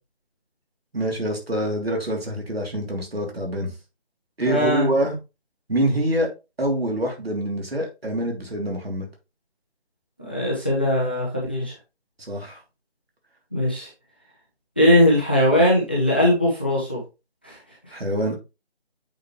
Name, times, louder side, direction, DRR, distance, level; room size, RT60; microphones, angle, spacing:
voice 1, 0.9-3.7 4.4-5.2 5.7-6.3 6.6-9.1 12.2-12.6 17.9-18.3, right 1 dB, 70° right, 1 dB, 3.2 m, -25 dB
voice 2, 4.5-4.9 10.2-11.7 13.5-13.9 14.8-17.0 17.4-17.6, left 1 dB, 10° left, -4 dB, 0.7 m, -20 dB
8.1 x 4.9 x 3.1 m, 0.27 s
figure-of-eight pair, 160°, 32 cm